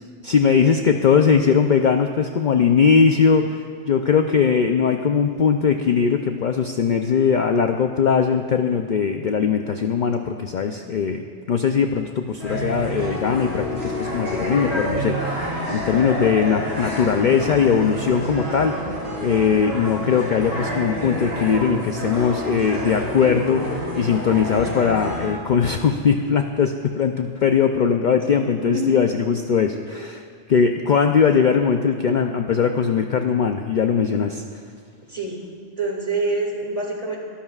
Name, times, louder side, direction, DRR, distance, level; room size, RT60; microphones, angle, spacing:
voice 1, 0.2-11.2 11.5-18.8 19.2-23.7 24.0-30.2 30.5-34.4, left 6 dB, 55° left, 5 dB, 0.6 m, -20 dB
sound 1, 12.4-25.3, equal, 65° right, 4.0 m, -28 dB
voice 2, 35.1-35.4 35.8-37.2, right 3 dB, 30° right, -1 dB, 2.3 m, -26 dB
23.0 x 13.0 x 2.4 m, 2.1 s
omnidirectional pair, 1.2 m